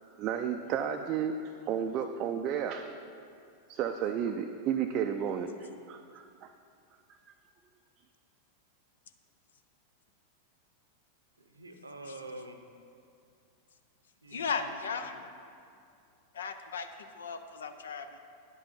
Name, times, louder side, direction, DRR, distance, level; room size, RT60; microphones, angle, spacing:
voice 1, 0.2-1.3 1.7-2.9 3.7-6.5, right 8 dB, 35° right, 5 dB, 0.4 m, -32 dB
voice 2, 11.4-12.6 14.2-15.2, right 2 dB, 80° right, 6 dB, 0.7 m, -47 dB
voice 3, 14.3-15.2 16.3-16.9 17.1-18.2, left 5 dB, 65° left, 9 dB, 0.5 m, -36 dB
9.6 x 7.6 x 4.3 m, 2.4 s
figure-of-eight pair, 90°, 0 cm